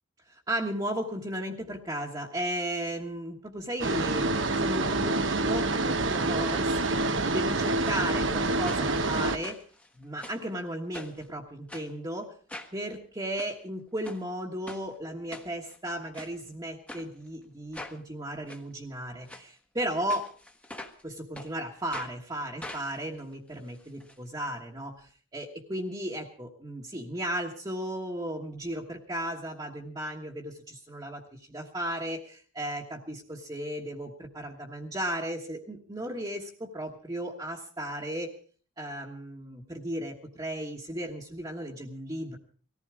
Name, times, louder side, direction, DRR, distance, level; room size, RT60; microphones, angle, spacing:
voice 1, 0.3-7.0 7.2-9.6 9.9-12.3 12.7-20.2 21.0-38.3 38.8-42.4, right 1 dB, 20° right, -2 dB, 1.4 m, -35 dB
sound 1, 3.8-9.4, right 2 dB, 75° right, 1.1 m, -27 dB
sound 2, 7.8-8.0 8.7-9.1 9.4-10.5 10.9-11.3 11.7-11.9 12.5-12.8 13.2-13.5 14.0-14.2 14.7-14.8 15.3-15.8 16.1-16.3 16.9-17.0 17.7-18.0 18.5-18.6 19.2-19.4 20.1-21.0 21.3-21.5 21.9-22.1 22.6-24.1 24.4-24.5 24.8-24.9, left 1 dB, 5° left, 1.2 m, -43 dB
19.0 x 14.5 x 4.8 m, 0.42 s
head